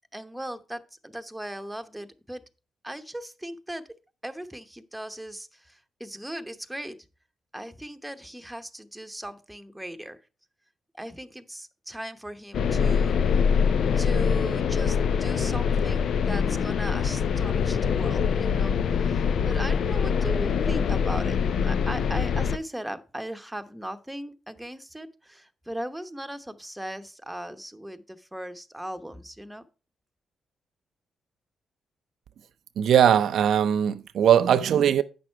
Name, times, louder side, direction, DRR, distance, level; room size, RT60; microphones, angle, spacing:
voice 1, 0.1-2.4 2.8-3.9 4.2-7.0 7.5-10.2 11.0-13.5 14.0-18.8 19.0-29.6, right 1 dB, 5° right, 1.0 m, -38 dB
sound 1, 12.5-22.6, left 6 dB, 70° left, 0.5 m, -24 dB
voice 2, 32.8-35.0, right 9 dB, 75° right, 0.5 m, -20 dB
8.6 x 6.1 x 4.4 m
supercardioid pair, 65°, 0 cm